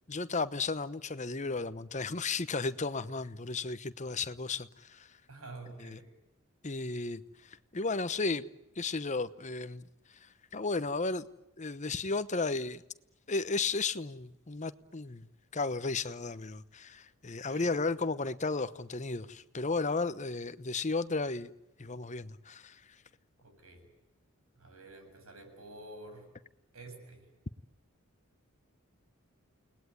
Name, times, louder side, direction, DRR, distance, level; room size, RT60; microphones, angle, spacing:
voice 1, 0.1-5.1 5.8-6.0 6.6-8.4 8.8-9.8 10.2-11.3 11.6-12.8 13.3-15.3 15.5-21.5 21.8-22.8, left 3 dB, 35° left, 1.0 m, -34 dB
voice 2, 5.3-6.1 17.5-18.1 23.4-23.9 24.6-26.3 26.7-27.3, right 2 dB, 85° right, 7.7 m, -49 dB
29.5 x 20.0 x 9.7 m
head